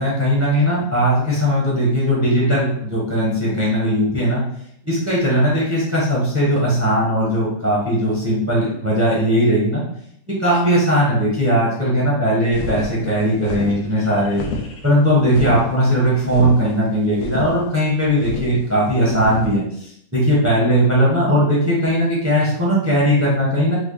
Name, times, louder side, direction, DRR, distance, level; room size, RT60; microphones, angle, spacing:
voice 1, 0.0-4.4 4.8-9.8 10.4-14.4 14.8-19.9 20.1-23.8, equal, 15° right, -6 dB, 0.7 m, -18 dB
sound 1, 12.5-19.6, left 3 dB, 75° left, 1.0 m, -30 dB
3.1 x 2.3 x 3.6 m, 0.71 s
omnidirectional pair, 1.5 m